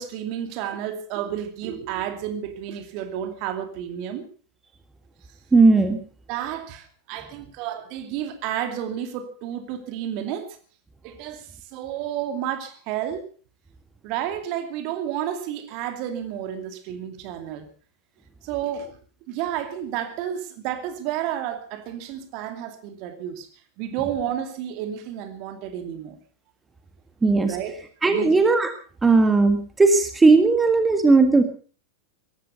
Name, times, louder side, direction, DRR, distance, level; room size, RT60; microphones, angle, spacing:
voice 1, 0.0-4.2 6.3-10.6 11.0-13.3 14.0-17.7 18.4-19.0 19.3-23.5 23.8-26.2 27.5-27.8 28.1-28.3, right 10 dB, 45° right, 8 dB, 2.6 m, -31 dB
voice 2, 5.5-6.0 27.2-27.6 28.0-28.7 29.0-31.4, right 3 dB, 10° right, 8 dB, 1.8 m, -17 dB
17.5 x 15.0 x 5.4 m, 0.41 s
figure-of-eight pair, 90°, 0 cm